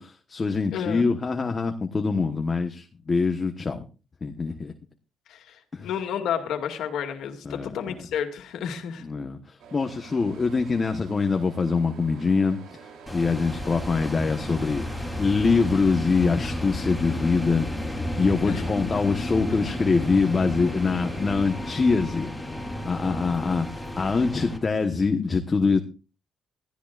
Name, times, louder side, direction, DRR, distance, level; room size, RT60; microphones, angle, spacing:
voice 1, 0.0-3.8 4.2-4.7 5.7-5.9 7.4-8.0 9.0-17.7 18.2-22.3 22.8-25.8, left 4 dB, 30° left, 6 dB, 1.2 m, -24 dB
voice 2, 0.7-1.0 5.3-9.1 18.5-18.6, left 8 dB, 80° left, 5 dB, 2.2 m, -31 dB
sound 1, 9.6-21.6, right 6 dB, 90° right, 3.3 m, -49 dB
sound 2, 13.1-24.6, left 1 dB, 5° left, 3.4 m, -32 dB
21.0 x 13.5 x 2.5 m, 0.33 s
cardioid pair, 125°, 0 cm